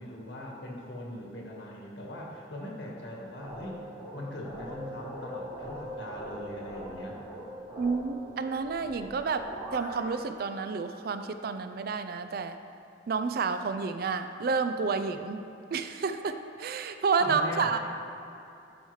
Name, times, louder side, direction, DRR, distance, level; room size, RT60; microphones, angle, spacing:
voice 1, 0.0-3.8 4.1-7.2 17.2-17.8, left 1 dB, 75° left, -2 dB, 1.5 m, -40 dB
sound 1, 3.4-10.1, equal, 15° right, 1.2 m, -42 dB
voice 2, 7.8-12.6 13.1-15.4 15.7-17.8, right 5 dB, 55° right, 9 dB, 0.4 m, -30 dB
11.0 x 5.6 x 3.2 m, 2.8 s
head